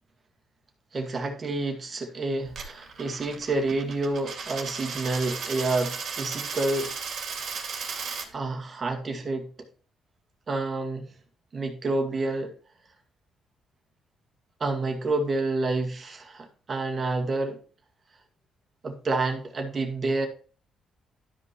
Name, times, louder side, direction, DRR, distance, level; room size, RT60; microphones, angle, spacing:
voice 1, 0.9-6.9 8.3-9.5 10.5-11.1 11.5-12.5 14.6-17.6 18.8-20.3, right 2 dB, 40° right, 2.1 m, -28 dB
Coin (dropping), 2.5-8.3, right 5 dB, 60° right, 2.4 m, -35 dB
12.0 x 5.5 x 3.2 m
cardioid pair, 90°, 0 cm